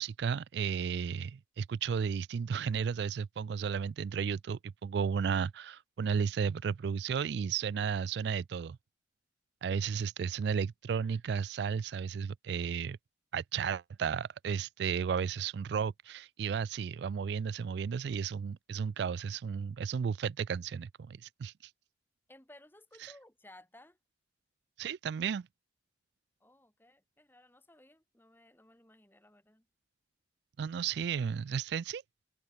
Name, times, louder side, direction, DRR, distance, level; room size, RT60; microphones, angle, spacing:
voice 1, 0.0-8.8 9.6-13.0 13.3-21.7 23.0-23.1 24.8-25.5 30.6-32.0, right 6 dB, 60° right, 0.3 m, -33 dB
voice 2, 22.3-24.0 26.4-29.7, left 1 dB, 10° left, 2.1 m, -58 dB
head